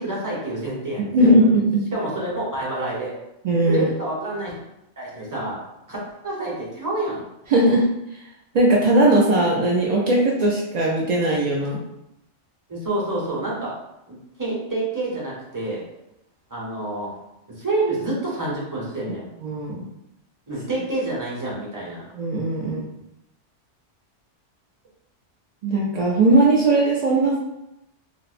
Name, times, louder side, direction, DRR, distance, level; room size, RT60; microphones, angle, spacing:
voice 1, 0.0-1.4 1.9-3.1 3.7-4.5 5.0-5.6 5.9-7.2 12.7-13.7 14.1-15.8 16.5-17.1 17.6-19.2 20.5-22.1, right 2 dB, 20° right, -5 dB, 0.7 m, -28 dB
voice 2, 1.1-1.8 3.4-3.9 7.5-7.9 8.5-11.8 19.4-19.9 22.1-22.9 25.6-27.4, right 1 dB, 70° right, -3 dB, 0.4 m, -18 dB
4.2 x 2.0 x 2.4 m, 0.86 s
omnidirectional pair, 1.2 m